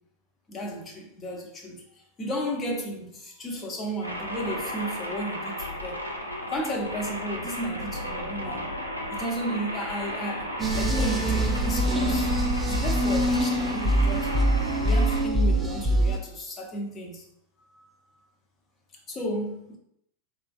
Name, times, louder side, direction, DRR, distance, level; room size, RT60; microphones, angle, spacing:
voice 1, 0.5-6.0 6.4-8.7 9.1-12.3 12.6-14.4 14.8-17.3 17.7-17.9 19.1-19.8, equal, 25° left, 0 dB, 0.7 m, -33 dB
sound 1, 4.0-15.2, equal, 90° left, 0.5 m, -35 dB
sound 2, 10.6-16.2, right 1 dB, 15° right, 0.5 m, -24 dB
3.6 x 2.4 x 2.3 m, 0.75 s
figure-of-eight pair, 90°, 0 cm